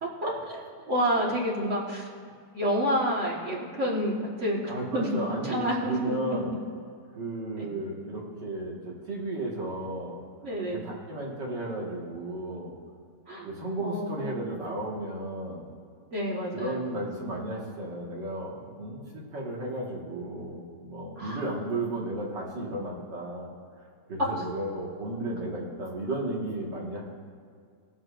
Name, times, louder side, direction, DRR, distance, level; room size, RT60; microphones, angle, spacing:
voice 1, 0.0-2.0 2.5-6.2 7.6-7.7 10.4-10.8 13.3-13.5 13.8-14.4 16.1-17.0 21.2-21.4, equal, 45° right, -3 dB, 1.8 m, -29 dB
voice 2, 4.7-6.5 7.2-8.8 9.1-10.2 10.6-12.7 13.4-15.7 16.5-23.5 24.1-27.0, right 1 dB, 85° right, -3 dB, 2.5 m, -34 dB
20.5 x 7.5 x 2.5 m, 2.2 s
omnidirectional pair, 1.8 m